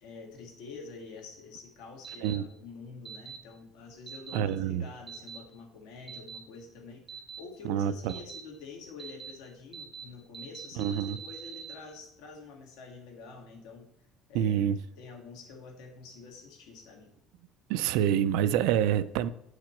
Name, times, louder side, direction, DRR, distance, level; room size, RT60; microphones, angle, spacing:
voice 1, 0.0-13.9 14.3-17.1, left 4 dB, 90° left, 1.9 m, -47 dB
sound 1, 2.0-2.4 3.1-3.4 4.1-4.4 5.1-5.4 6.1-6.4 7.1-7.4 8.1-8.4 9.0-9.3 9.7-10.0 10.3-11.7, right 7 dB, 15° right, 0.9 m, -43 dB
voice 2, 4.3-4.9 7.6-8.1 10.8-11.2 14.3-14.8 17.7-19.3, right 10 dB, 85° right, 0.4 m, -27 dB
8.4 x 4.8 x 4.4 m
cardioid pair, 175°, 0 cm